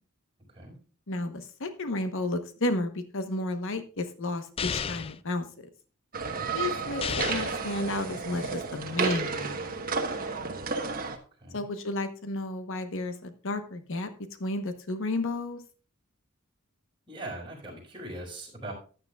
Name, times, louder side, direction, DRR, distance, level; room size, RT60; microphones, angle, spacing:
voice 1, 1.1-5.5 6.5-9.8 11.5-14.1 14.4-15.6, left 2 dB, 65° left, 9 dB, 1.0 m, -32 dB
sound 1, 4.6-5.2 7.0-7.6, left 6 dB, 25° left, 0.4 m, -32 dB
sound 2, 6.1-11.2, right 4 dB, 40° right, 1.2 m, -32 dB
voice 2, 17.1-18.7, right 1 dB, 25° right, -2 dB, 4.7 m, -40 dB
14.5 x 9.6 x 2.3 m, 0.37 s
head